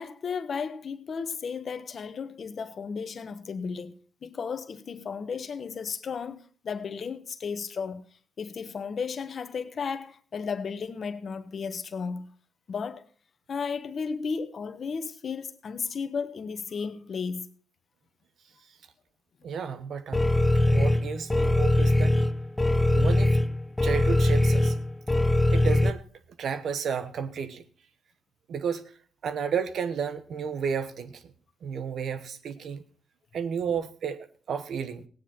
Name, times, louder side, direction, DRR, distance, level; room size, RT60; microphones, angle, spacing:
voice 1, 0.0-8.0 8.4-12.3 12.7-13.1 13.5-17.5, left 5 dB, 55° left, 1.2 m, -34 dB
voice 2, 19.4-20.3 20.7-22.2 22.9-23.4 23.8-24.7 25.5-26.0 26.4-27.6 28.5-28.8 29.2-31.3 31.6-32.8 33.3-35.1, right 6 dB, 70° right, 1.1 m, -32 dB
sound 1, 20.1-25.9, left 1 dB, 15° left, 0.7 m, -22 dB
16.5 x 9.7 x 4.4 m
cardioid pair, 65°, 0 cm